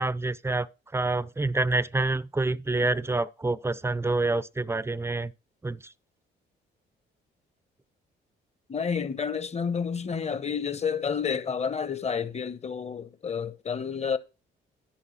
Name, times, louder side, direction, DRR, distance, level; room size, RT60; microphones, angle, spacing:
voice 1, 0.0-5.3 5.6-5.8, right 2 dB, 15° right, 0.6 m, -27 dB
voice 2, 8.7-14.2, left 6 dB, 35° left, 1.1 m, -30 dB
10.5 x 4.7 x 7.4 m
cardioid pair, 90°, 20 cm